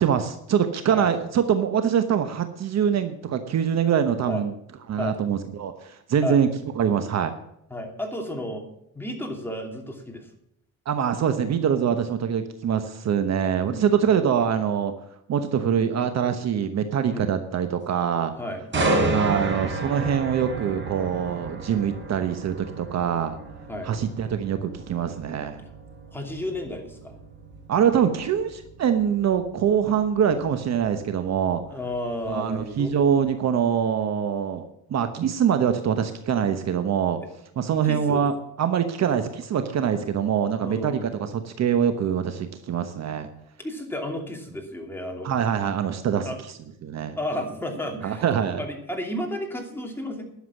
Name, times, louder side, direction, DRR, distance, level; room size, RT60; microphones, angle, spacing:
voice 1, 0.0-4.5 4.9-6.5 6.8-7.3 10.9-14.9 15.3-18.3 19.1-23.4 23.8-25.6 27.7-31.6 32.3-37.2 37.6-43.3 45.2-46.3 46.8-47.2 48.0-48.6, right 8 dB, 50° right, 9 dB, 1.1 m, -24 dB
voice 2, 7.7-8.7 8.9-10.3 13.6-14.1 17.1-17.3 18.4-18.9 23.7-23.9 25.6-25.7 26.1-27.1 31.7-32.9 37.9-38.2 40.6-41.1 43.6-45.3 46.3-46.4 47.2-48.3 48.6-50.2, left 1 dB, 5° left, 2 dB, 2.6 m, -32 dB
sound 1, 18.7-32.6 33.0-33.2, right 2 dB, 35° right, 4.2 m, -31 dB
11.5 x 7.3 x 7.4 m, 0.77 s
cardioid pair, 115°, 34 cm